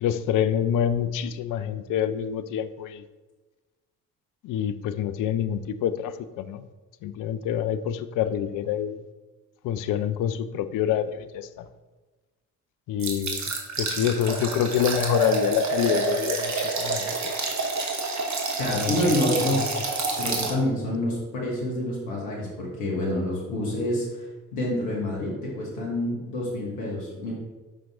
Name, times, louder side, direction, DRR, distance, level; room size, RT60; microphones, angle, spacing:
voice 1, 0.0-3.0 4.4-6.7 7.0-9.0 9.6-11.6 12.9-13.4 13.8-17.2 18.7-18.9 19.3-19.6, left 9 dB, 45° left, 12 dB, 0.5 m, -27 dB
sound 1, 13.0-20.5, right 3 dB, 40° right, 1.3 m, -28 dB
voice 2, 18.6-19.6 20.2-24.1 24.5-27.3, left 1 dB, 75° left, -3 dB, 1.4 m, -27 dB
5.3 x 5.2 x 3.5 m, 1.2 s
figure-of-eight pair, 40°, 45 cm